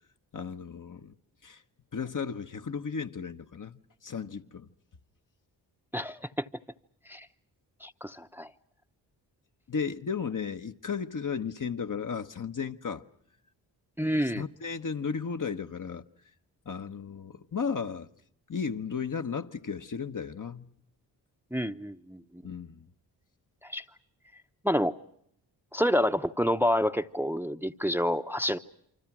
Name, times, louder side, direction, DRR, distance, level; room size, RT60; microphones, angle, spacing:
voice 1, 0.3-1.1 1.4-1.6 1.9-4.7 9.7-13.0 14.0-16.0 16.6-18.1 18.5-20.7 22.4-22.9, left 6 dB, 45° left, 1.2 m, -34 dB
voice 2, 5.9-6.5 7.1-7.3 7.8-8.5 14.0-14.4 21.5-22.4 23.6-23.8 24.6-24.9 25.7-28.6, equal, 5° right, 0.9 m, -28 dB
28.0 x 25.0 x 6.1 m
supercardioid pair, 40°, 44 cm